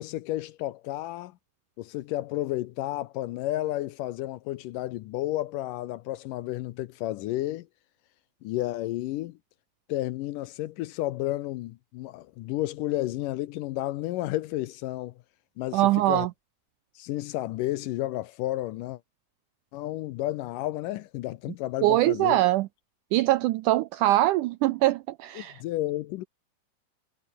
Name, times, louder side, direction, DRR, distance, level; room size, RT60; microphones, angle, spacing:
voice 1, 0.0-1.3 1.8-7.7 8.4-9.4 9.9-15.1 15.6-16.3 17.0-19.0 19.7-22.4 25.4-26.2, left 16 dB, 75° left, 2.1 m, -32 dB
voice 2, 15.7-16.3 21.8-22.7 23.1-25.6, right 16 dB, 85° right, 1.8 m, -23 dB
omnidirectional pair, 4.2 m